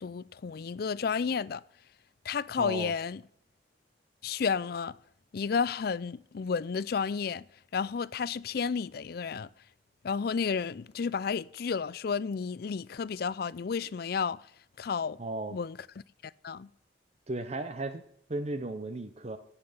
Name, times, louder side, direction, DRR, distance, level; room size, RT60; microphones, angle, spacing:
voice 1, 0.0-1.6 2.2-3.2 4.2-4.9 5.3-7.4 7.7-9.5 10.0-14.4 14.8-15.2 15.5-15.8 16.2-16.7, left 6 dB, 55° left, 0.4 m, -32 dB
voice 2, 2.6-2.9 15.2-15.6 17.3-18.0 18.3-19.4, right 2 dB, 35° right, 0.7 m, -35 dB
16.5 x 5.8 x 6.6 m
head